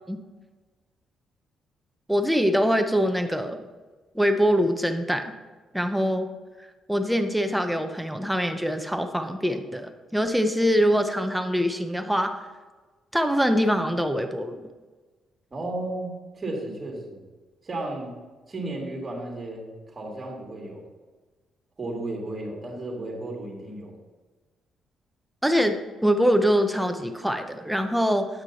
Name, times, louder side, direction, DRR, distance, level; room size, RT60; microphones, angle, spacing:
voice 1, 2.1-3.6 4.1-5.3 5.7-6.3 6.9-12.3 13.1-14.6 25.4-28.3, equal, 5° right, 7 dB, 0.8 m, -24 dB
voice 2, 15.5-17.2 17.6-18.1 18.5-20.8 21.8-23.9, right 2 dB, 30° right, -1 dB, 2.8 m, -34 dB
9.6 x 6.0 x 4.2 m, 1.3 s
cardioid pair, 90°, 0 cm